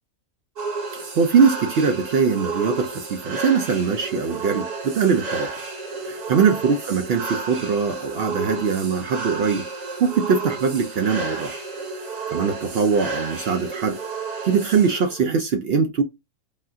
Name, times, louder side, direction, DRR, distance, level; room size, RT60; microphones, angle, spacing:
sound 1, 0.6-15.2, right 4 dB, 60° right, 1.4 m, -32 dB
voice 1, 0.9-5.5 6.0-9.7 10.0-11.6 12.3-14.0 14.4-16.0, right 6 dB, 75° right, 0.5 m, -21 dB
3.5 x 2.3 x 2.6 m
omnidirectional pair, 1.6 m